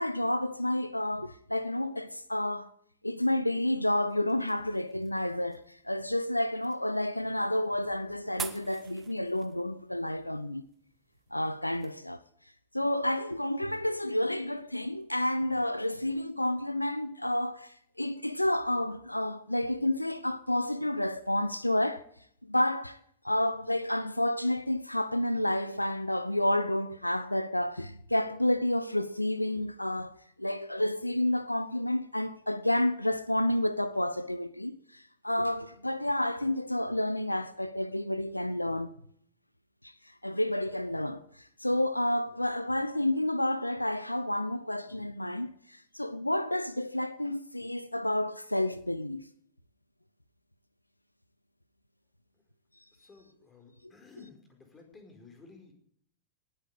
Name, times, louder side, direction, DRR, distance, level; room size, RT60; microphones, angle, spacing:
voice 1, 0.0-2.7 3.0-10.6 11.3-12.2 12.7-22.0 22.4-23.0 23.2-38.9 39.8-49.2, left 1 dB, 85° left, 0.6 m, -30 dB
sound 1, 3.5-11.9, right 7 dB, 20° right, 1.4 m, -48 dB
voice 2, 52.9-55.7, left 4 dB, 15° left, 4.9 m, -54 dB
18.5 x 8.8 x 8.2 m
figure-of-eight pair, 90°, 0 cm